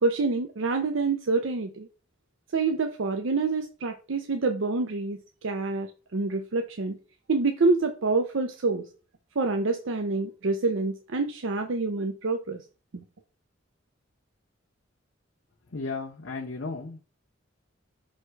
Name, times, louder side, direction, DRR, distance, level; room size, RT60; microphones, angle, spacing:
voice 1, 0.0-1.9 2.5-7.0 7.3-8.8 9.4-12.6 12.9-13.0, right 3 dB, 80° right, 6 dB, 0.6 m, -27 dB
voice 2, 15.7-17.0, left 3 dB, 75° left, -1 dB, 0.9 m, -34 dB
6.4 x 3.3 x 4.6 m, 0.35 s
head